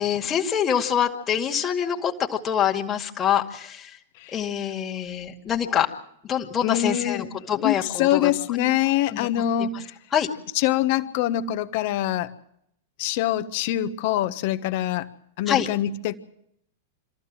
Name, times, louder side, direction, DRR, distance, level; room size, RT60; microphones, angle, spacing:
voice 1, 0.0-4.0 4.3-5.9 6.2-8.3 9.1-9.3 9.6-9.7 10.1-10.3 15.5-15.7, left 9 dB, 25° left, 1 dB, 2.2 m, -25 dB
voice 2, 6.6-9.9 10.5-12.3 13.0-15.1 15.4-16.2, left 12 dB, 50° left, 12 dB, 1.3 m, -24 dB
25.5 x 14.5 x 7.6 m, 0.72 s
figure-of-eight pair, 100°, 0 cm